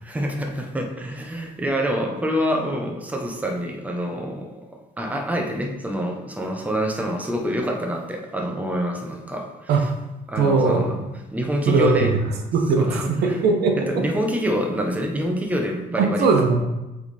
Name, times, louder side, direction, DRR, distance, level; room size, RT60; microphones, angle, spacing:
voice 1, 0.0-9.9 10.3-11.1 11.3-12.1 12.8-13.4 13.8-16.3, equal, 10° right, 2 dB, 0.9 m, -26 dB
voice 2, 10.4-11.0 11.7-12.2 12.5-14.0 16.0-16.6, right 4 dB, 70° right, 3 dB, 1.0 m, -20 dB
7.8 x 3.6 x 4.2 m, 1.0 s
cardioid pair, 110°, 17 cm